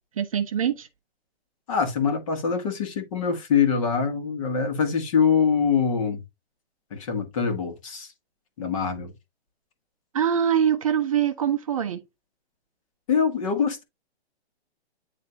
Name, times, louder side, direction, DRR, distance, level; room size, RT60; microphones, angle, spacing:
voice 1, 0.2-0.9 10.1-12.0, right 9 dB, 30° right, 0.7 m, -23 dB
voice 2, 1.7-6.2 6.9-8.1 8.6-9.1 13.1-13.8, left 6 dB, 30° left, 1.8 m, -24 dB
9.7 x 3.3 x 4.1 m
hypercardioid pair, 170°, 33 cm